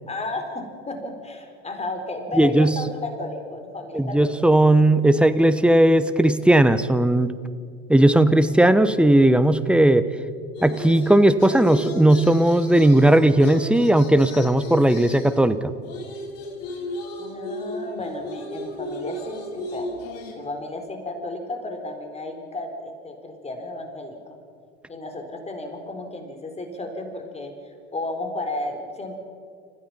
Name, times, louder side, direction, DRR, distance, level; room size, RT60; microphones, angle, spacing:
voice 1, 0.1-4.3 17.2-19.9 20.4-24.2 24.9-29.2, left 2 dB, 20° left, 4 dB, 4.0 m, -33 dB
voice 2, 2.4-2.7 3.9-7.3 7.9-10.1 10.6-15.7, right 1 dB, 5° right, 12 dB, 1.1 m, -17 dB
sound 1, 10.5-15.5 15.8-20.3, equal, 50° left, 6.0 m, -34 dB
30.0 x 16.0 x 5.8 m, 2.2 s
hypercardioid pair, 80°, 32 cm